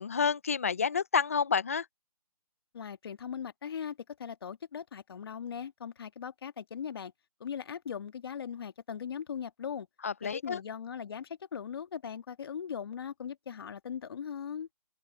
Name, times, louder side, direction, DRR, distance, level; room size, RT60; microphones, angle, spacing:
voice 1, 0.0-1.8 10.0-10.6, left 6 dB, 25° left, 0.4 m, -29 dB
voice 2, 2.7-7.1 7.4-9.9 10.3-14.7, left 7 dB, 40° left, 1.8 m, -39 dB
figure-of-eight pair, 160°, 19 cm